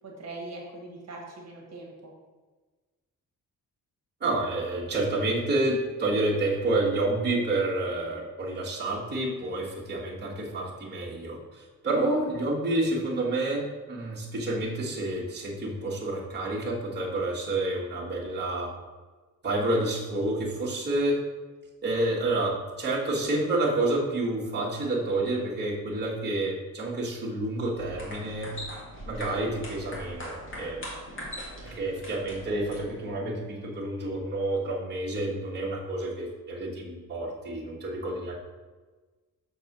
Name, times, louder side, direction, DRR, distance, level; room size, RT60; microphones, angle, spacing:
voice 1, 0.0-2.1, right 2 dB, 50° right, -1 dB, 1.6 m, -41 dB
voice 2, 4.2-13.6 13.9-18.7 19.4-21.2 21.8-28.5 29.1-30.8 31.6-38.3, right 2 dB, 30° right, -6 dB, 1.5 m, -29 dB
sound 1, 27.7-33.1, equal, 40° left, 1.7 m, -41 dB
6.6 x 4.6 x 5.9 m, 1.3 s
wide cardioid pair, 165°, 33 cm